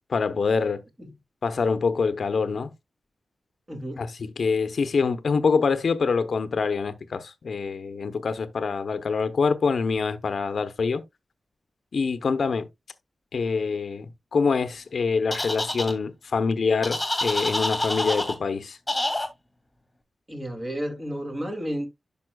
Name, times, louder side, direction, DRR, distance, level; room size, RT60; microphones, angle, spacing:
voice 1, 0.1-0.8 1.4-2.7 4.0-11.0 11.9-12.7 13.3-18.8, left 5 dB, 70° left, 0.8 m, -25 dB
voice 2, 3.7-4.0 20.3-21.9, equal, 25° right, 2.5 m, -32 dB
sound 1, 15.3-15.9 16.8-18.3 18.9-19.3, left 1 dB, 10° left, 2.1 m, -27 dB
11.0 x 5.5 x 2.2 m
wide cardioid pair, 95°, 0 cm